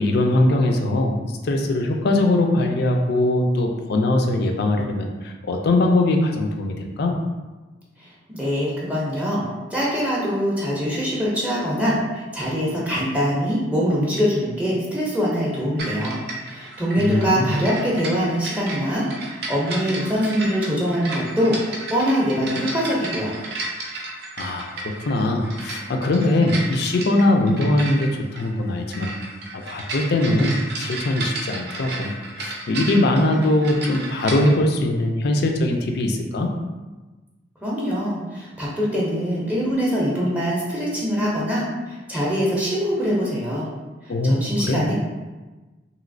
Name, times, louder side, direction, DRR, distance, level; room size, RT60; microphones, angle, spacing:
voice 1, 0.0-7.2 17.0-17.6 24.4-29.1 29.7-32.1 32.4-36.5 44.1-44.9, left 1 dB, 60° left, 3 dB, 0.4 m, -21 dB
voice 2, 8.0-9.4 9.7-23.3 37.6-43.7 44.0-44.9, equal, 10° right, -6 dB, 0.5 m, -23 dB
sound 1, 15.8-34.5, right 2 dB, 60° right, 0.5 m, -33 dB
3.0 x 2.7 x 2.6 m, 1.2 s
head